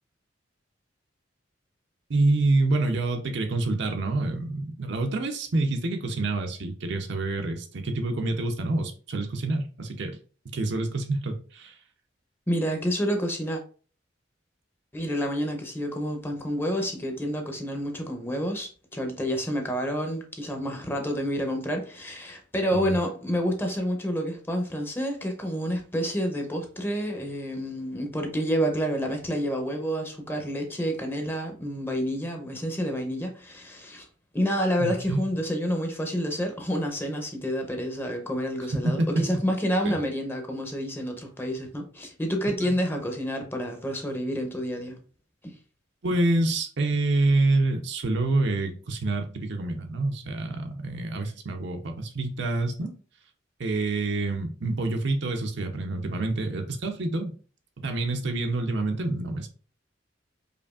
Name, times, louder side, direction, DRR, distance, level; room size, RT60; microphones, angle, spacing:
voice 1, 2.1-10.2 10.4-11.7 22.7-23.0 34.8-35.2 38.8-39.2 39.8-39.9 42.6-42.7 46.0-52.9 53.6-57.3 57.8-59.5, right 2 dB, 65° right, 0.6 m, -27 dB
voice 2, 12.5-13.6 14.9-34.1 34.3-45.0 45.4-45.5, equal, 10° left, 0.7 m, -29 dB
5.0 x 2.6 x 2.4 m
head